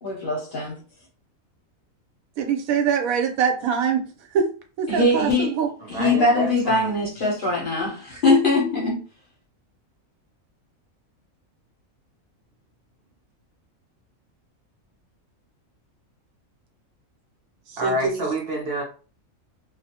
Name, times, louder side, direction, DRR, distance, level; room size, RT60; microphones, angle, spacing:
voice 1, 0.0-0.8 4.9-5.5 5.9-9.0, left 2 dB, 50° left, 0.6 m, -22 dB
voice 2, 2.4-4.1 4.3-4.5 4.8-5.7 17.8-18.2, right 6 dB, 80° right, 1.0 m, -23 dB
voice 3, 5.8-7.1 17.8-18.8, right 1 dB, 60° right, 0.7 m, -28 dB
2.3 x 2.0 x 2.7 m
omnidirectional pair, 1.4 m